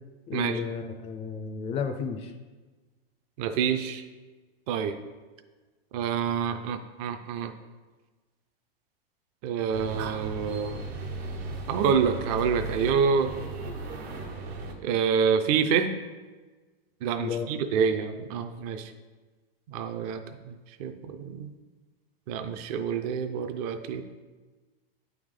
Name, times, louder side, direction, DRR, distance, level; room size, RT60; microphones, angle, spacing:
voice 1, 0.3-2.3 17.2-17.5, left 6 dB, 20° left, 6 dB, 0.4 m, -32 dB
voice 2, 3.4-4.0 4.7-5.0 5.9-7.5 9.4-10.8 11.7-13.3 14.8-15.9 17.0-18.9 19.7-20.2 20.5-20.6 20.8-21.5 22.3-24.0, right 6 dB, 40° right, 8 dB, 0.4 m, -27 dB
sound 1, 9.7-14.7, right 2 dB, 85° right, 1.3 m, -36 dB
9.0 x 3.5 x 3.7 m, 1.3 s
hypercardioid pair, 135°, 30 cm